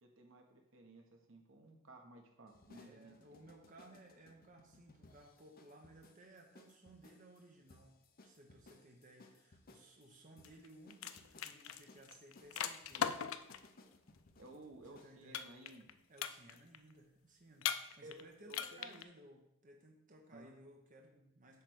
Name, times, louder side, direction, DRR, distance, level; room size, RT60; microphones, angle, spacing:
voice 1, 0.0-3.5 14.4-15.9 18.0-19.0 20.3-20.5, right 1 dB, 75° right, 3 dB, 1.2 m, -56 dB
sound 1, 2.5-15.2, left 2 dB, 45° left, 0.7 m, -64 dB
voice 2, 2.7-7.9 8.2-13.1 15.0-15.5 16.1-21.6, right 1 dB, 40° right, 1 dB, 0.9 m, -60 dB
sound 2, 10.4-10.7 10.9-13.7 15.3-15.9 16.2-16.8 17.6-18.2 18.5-19.0, left 8 dB, 85° left, 0.5 m, -39 dB
8.4 x 3.3 x 6.2 m, 0.80 s
head